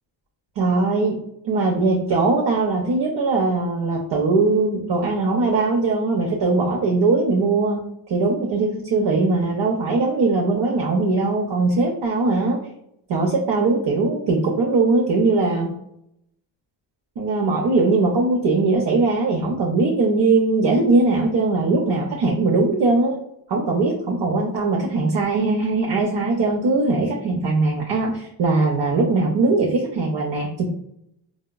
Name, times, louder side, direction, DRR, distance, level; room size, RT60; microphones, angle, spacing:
voice 1, 0.6-1.2 1.4-12.6 13.1-15.7 17.2-23.2 23.5-30.7, right 3 dB, 60° right, -1 dB, 0.7 m, -20 dB
4.7 x 2.1 x 2.2 m, 0.75 s
cardioid pair, 110°, 47 cm